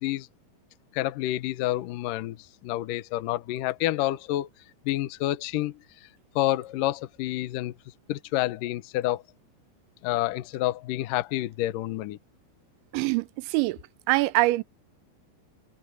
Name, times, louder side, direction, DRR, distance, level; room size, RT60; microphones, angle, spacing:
voice 1, 0.9-2.4 2.6-4.5 4.9-5.8 6.4-7.7 8.1-9.2 10.0-12.2, left 15 dB, 85° left, 1.9 m, -28 dB
voice 2, 12.9-13.8 14.1-14.6, right 20 dB, 85° right, 3.1 m, -24 dB
omnidirectional pair, 5.3 m